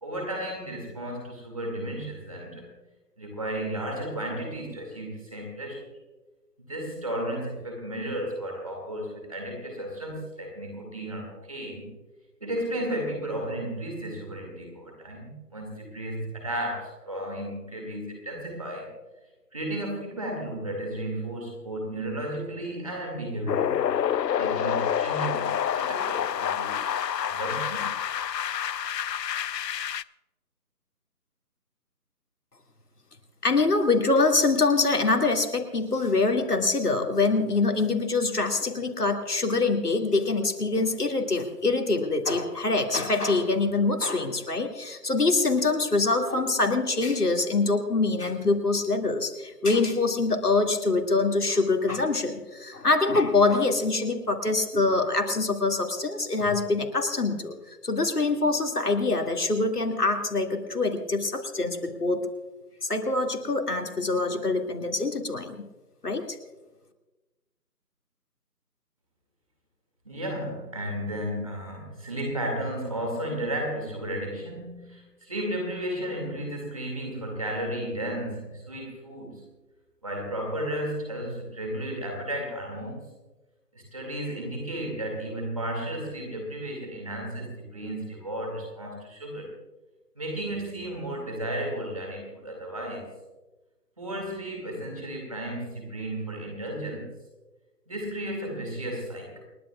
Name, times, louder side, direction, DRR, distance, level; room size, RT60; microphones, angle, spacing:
voice 1, 0.0-2.7 3.2-5.8 6.7-11.9 12.4-18.9 19.5-24.0 24.3-27.8 70.0-79.4 80.0-83.1 83.7-89.5 90.2-93.1 94.0-97.1 97.9-99.4, right 1 dB, 20° right, 1 dB, 2.3 m, -33 dB
sound 1, 23.5-30.0, left 9 dB, 90° left, 0.6 m, -28 dB
voice 2, 33.4-62.3 62.9-65.6 66.0-66.4, left 3 dB, 70° left, 3 dB, 2.3 m, -24 dB
29.0 x 10.5 x 2.4 m, 1.1 s
figure-of-eight pair, 175°, 48 cm